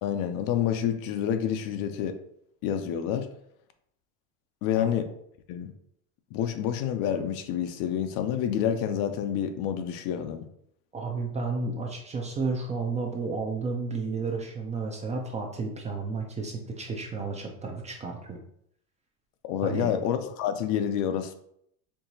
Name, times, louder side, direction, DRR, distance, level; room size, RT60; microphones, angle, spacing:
voice 1, 0.0-2.2 2.6-3.3 4.6-5.1 5.5-5.7 6.3-10.5 19.5-21.3, left 9 dB, 55° left, 8 dB, 0.5 m, -28 dB
voice 2, 10.9-18.4 19.6-19.9, right 4 dB, 20° right, 1 dB, 0.4 m, -32 dB
4.6 x 2.9 x 2.7 m, 0.71 s
supercardioid pair, 120°, 40 cm